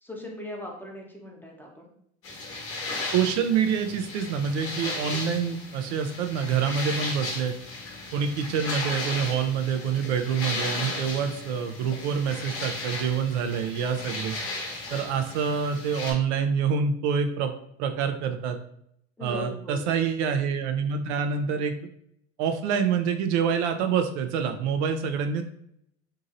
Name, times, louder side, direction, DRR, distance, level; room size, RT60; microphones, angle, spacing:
voice 1, 0.0-1.9 14.9-15.0 19.2-19.8, left 1 dB, 5° left, -1 dB, 0.6 m, -39 dB
sound 1, 2.2-16.1, left 2 dB, 40° left, 1.0 m, -35 dB
voice 2, 3.1-7.5 8.1-14.4 14.9-17.5 17.8-18.6 19.2-21.7 22.4-25.4, right 7 dB, 70° right, 7 dB, 0.5 m, -26 dB
2.8 x 2.7 x 2.5 m, 0.71 s
hypercardioid pair, 85°, 35 cm